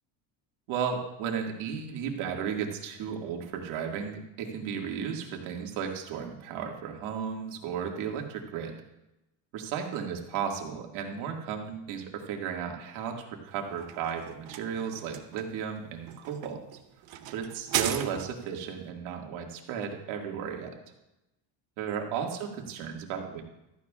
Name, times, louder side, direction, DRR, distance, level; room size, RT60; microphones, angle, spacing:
voice 1, 0.7-8.7 9.5-16.6 17.3-20.7 21.8-23.4, right 7 dB, 70° right, 1 dB, 2.1 m, -34 dB
sound 1, 13.5-18.6, right 10 dB, 45° right, 0.8 m, -36 dB
15.5 x 13.5 x 2.4 m, 0.91 s
cardioid pair, 170°, 50 cm